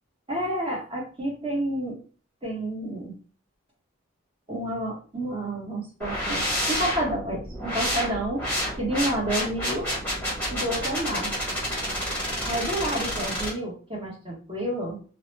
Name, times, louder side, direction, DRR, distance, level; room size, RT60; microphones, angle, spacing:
voice 1, 0.3-2.0 2.4-3.2 4.5-8.4 8.8-9.9 10.5-11.3 12.4-15.0, right 1 dB, 25° right, -4 dB, 1.0 m, -30 dB
sound 1, 6.0-13.5, equal, 10° left, 1.0 m, -29 dB
2.3 x 2.1 x 3.1 m, 0.39 s
head